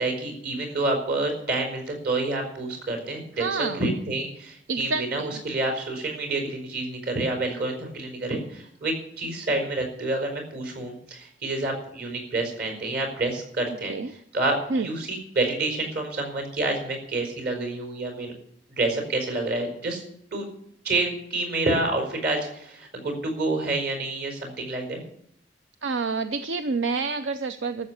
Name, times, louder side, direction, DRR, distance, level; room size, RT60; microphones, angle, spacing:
voice 1, 0.0-3.4 3.7-18.3 18.8-20.0 20.3-20.4 20.8-25.0, right 2 dB, 55° right, 4 dB, 5.0 m, -28 dB
voice 2, 3.4-3.8 4.7-5.4 13.9-14.1 14.7-14.9 25.8-27.9, right 4 dB, 80° right, 9 dB, 0.7 m, -28 dB
13.5 x 7.6 x 9.7 m, 0.71 s
head